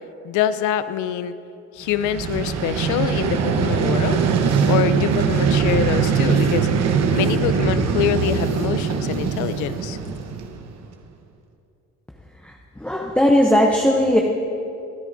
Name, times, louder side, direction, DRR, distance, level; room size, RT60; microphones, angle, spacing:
voice 1, 0.2-1.3 1.7-4.3 4.7-6.7 7.1-10.0, left 10 dB, 85° left, 13 dB, 0.6 m, -25 dB
Vehicle, 1.9-10.8, right 6 dB, 65° right, 1.0 m, -21 dB
sound 1, 4.5-6.5 7.0-9.6 9.9-10.4, right 3 dB, 85° right, 1.8 m, -33 dB
voice 2, 12.4-14.2, left 1 dB, 5° left, 1 dB, 0.7 m, -18 dB
23.5 x 9.1 x 2.6 m, 2.7 s
cardioid pair, 110°, 29 cm